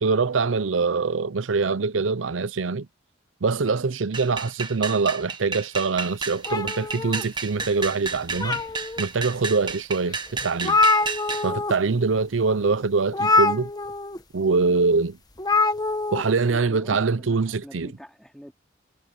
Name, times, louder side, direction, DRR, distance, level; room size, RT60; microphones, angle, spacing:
voice 1, 0.0-2.9 3.4-8.6 9.0-10.8 11.4-13.7 14.3-15.2 16.1-17.9, right 4 dB, 85° right, 0.7 m, -24 dB
sound 1, 4.1-11.5, right 4 dB, 25° right, 1.4 m, -32 dB
sound 2, 6.5-7.7 8.1-9.0 9.6-9.7 10.1-10.2 10.4-11.7 12.0-12.2 13.1-14.2 15.4-16.2, left 3 dB, 20° left, 1.3 m, -24 dB
voice 2, 16.1-18.5, equal, 5° left, 4.4 m, -45 dB
head